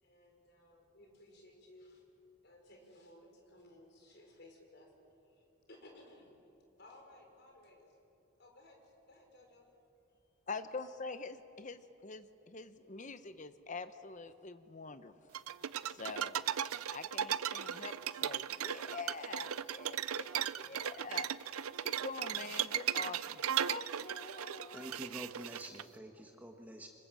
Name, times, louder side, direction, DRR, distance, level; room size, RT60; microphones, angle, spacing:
voice 1, 0.0-2.0 2.4-6.3 6.8-8.0 8.4-9.7 10.1-10.3, left 1 dB, 50° left, 2 dB, 4.9 m, -59 dB
voice 2, 10.5-15.1 15.9-16.4 16.9-18.0 18.2-21.3 21.8-23.4 23.7-25.0, left 4 dB, 35° left, 11 dB, 0.8 m, -45 dB
sound 1, 15.3-25.8, right 10 dB, 85° right, 0.6 m, -37 dB
voice 3, 24.7-26.9, equal, 10° right, 3 dB, 1.3 m, -47 dB
27.5 x 25.0 x 7.6 m, 2.9 s
head